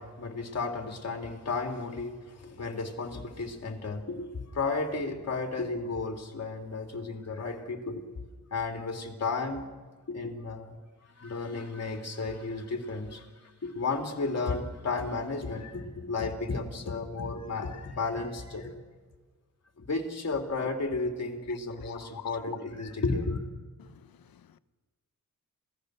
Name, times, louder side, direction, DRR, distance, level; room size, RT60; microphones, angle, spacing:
voice 1, 0.0-8.1 8.5-9.7 10.1-10.8 11.2-18.8 19.8-23.4, left 3 dB, 50° left, 3.2 m, -33 dB
voice 2, 21.5-22.4 23.8-24.6, left 10 dB, 85° left, 0.9 m, -50 dB
27.5 x 17.5 x 6.5 m
wide cardioid pair, 100°, 34 cm